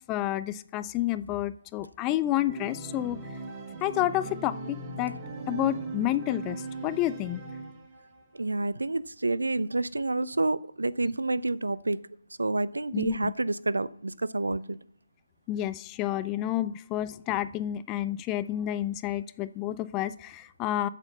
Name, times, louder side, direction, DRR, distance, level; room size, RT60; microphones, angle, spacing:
voice 1, 0.1-3.2 3.8-5.1 5.5-7.4 12.9-13.3 15.5-20.9, left 14 dB, 15° left, 0.3 m, -30 dB
Organ, 2.5-8.2, right 3 dB, 20° right, 1.6 m, -39 dB
voice 2, 8.4-12.0 12.4-14.8, right 2 dB, 70° right, 0.5 m, -28 dB
8.1 x 7.0 x 6.8 m
figure-of-eight pair, 145°, 0 cm